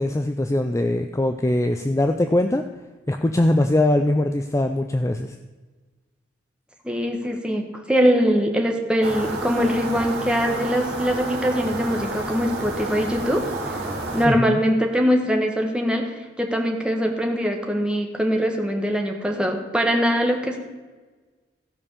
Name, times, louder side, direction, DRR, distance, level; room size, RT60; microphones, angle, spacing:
voice 1, 0.0-2.6 3.1-5.4 14.3-14.5, left 1 dB, 15° left, 6 dB, 0.4 m, -21 dB
voice 2, 6.8-13.5 13.7-13.8 14.1-20.6, equal, 5° right, 2 dB, 1.3 m, -22 dB
sound 1, 9.0-14.3, right 2 dB, 55° right, 2.9 m, -30 dB
15.0 x 5.4 x 6.8 m, 1.3 s
head